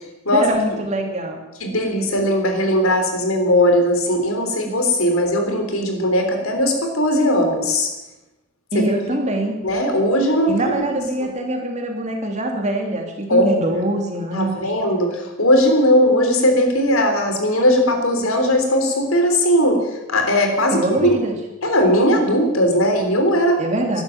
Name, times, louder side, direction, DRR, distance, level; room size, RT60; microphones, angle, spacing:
voice 1, 0.3-1.4 8.7-9.6 10.5-14.7 20.7-21.4 23.6-24.0, right 1 dB, 35° right, 2 dB, 2.8 m, -23 dB
voice 2, 1.6-7.9 8.7-8.9 9.6-10.7 11.2-11.3 13.3-13.5 14.3-21.1 21.6-23.6, equal, 80° left, 4 dB, 3.6 m, -18 dB
13.5 x 11.0 x 9.3 m, 0.99 s
head